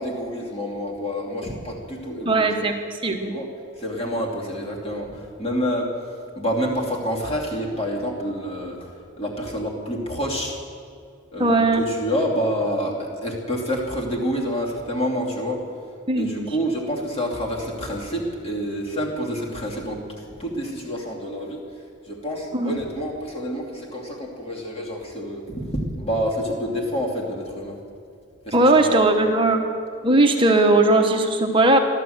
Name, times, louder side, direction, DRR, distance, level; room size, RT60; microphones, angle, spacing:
voice 1, 0.0-2.5 3.2-3.5 3.8-10.6 11.3-15.7 16.1-27.8 28.4-29.0, equal, 30° left, -2 dB, 2.7 m, -28 dB
voice 2, 2.2-2.8 3.0-3.3 11.4-11.9 16.1-16.5 22.5-22.8 28.5-29.6 30.0-31.8, right 2 dB, 25° right, 4 dB, 1.1 m, -18 dB
14.5 x 12.5 x 7.9 m, 2.4 s
head